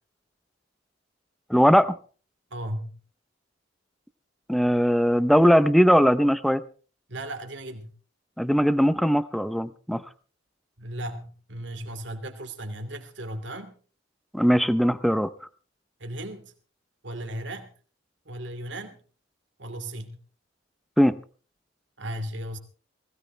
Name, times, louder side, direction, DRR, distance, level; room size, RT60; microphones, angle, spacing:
voice 1, 1.5-2.0 4.5-6.6 8.4-10.0 14.3-15.3 21.0-21.2, equal, ahead, 15 dB, 0.6 m, -20 dB
voice 2, 2.5-3.0 7.1-7.9 10.8-13.7 16.0-16.5 17.0-17.7 18.2-19.0 19.6-20.2 22.0-22.6, right 1 dB, 65° right, 7 dB, 2.6 m, -36 dB
19.5 x 16.5 x 3.3 m, 0.39 s
head